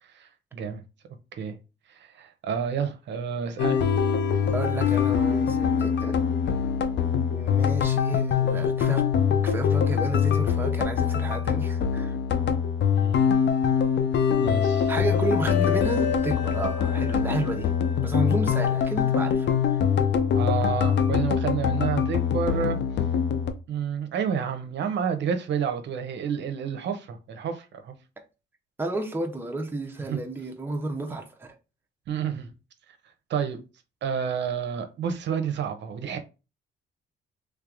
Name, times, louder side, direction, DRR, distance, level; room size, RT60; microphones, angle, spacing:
voice 1, 0.1-0.8 1.4-1.5 1.9-3.9 12.9-13.3 14.4-14.9 20.3-22.8 23.7-27.9 30.1-30.2 31.1-31.2 32.1-32.5 33.3-33.6 34.0-36.2, right 7 dB, 65° right, 0.6 m, -30 dB
sound 1, 3.6-23.5, left 7 dB, 65° left, 0.5 m, -23 dB
voice 2, 4.5-6.2 7.3-9.1 9.4-12.2 14.9-17.7 18.0-19.8 28.8-31.5, right 2 dB, 10° right, 0.6 m, -32 dB
3.3 x 3.3 x 2.4 m
cardioid pair, 90°, 20 cm